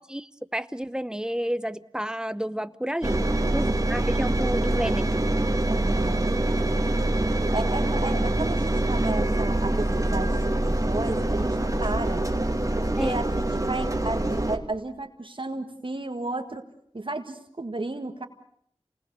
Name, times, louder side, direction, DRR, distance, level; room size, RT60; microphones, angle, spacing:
voice 1, 0.0-5.2 13.0-13.2, equal, 5° right, 15 dB, 0.9 m, -31 dB
Engine, 3.0-14.6, right 1 dB, 30° right, 1.9 m, -25 dB
voice 2, 3.0-3.7 5.7-6.3 7.4-12.2 12.8-16.6 16.9-18.2, right 2 dB, 50° right, 4 dB, 1.7 m, -33 dB
27.5 x 19.5 x 6.8 m, 0.69 s
wide cardioid pair, 50°, 11 cm